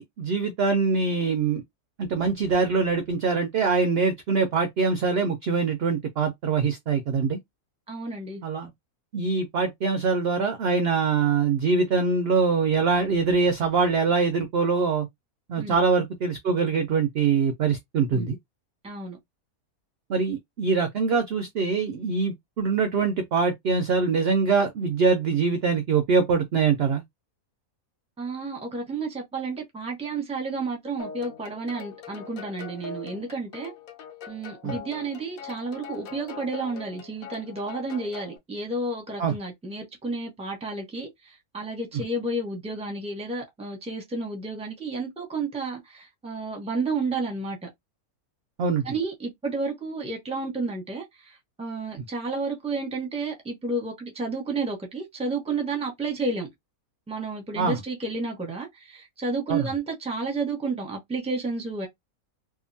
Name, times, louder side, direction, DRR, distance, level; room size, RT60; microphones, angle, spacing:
voice 1, 0.0-1.6 2.0-7.4 8.4-8.7 9.1-15.1 15.5-18.4 20.1-27.0 34.6-34.8 39.2-39.3 48.6-48.8 52.0-52.1 57.6-57.8 59.5-59.7, right 5 dB, 70° right, 0.6 m, -23 dB
voice 2, 7.9-8.4 15.6-15.8 18.1-18.3 18.8-19.2 28.2-33.7 34.3-41.1 41.5-47.6 48.8-51.0 51.6-56.5 57.1-61.9, right 3 dB, 5° right, 0.6 m, -31 dB
sound 1, 31.0-38.4, left 6 dB, 75° left, 1.1 m, -42 dB
2.8 x 2.4 x 2.6 m
omnidirectional pair, 1.5 m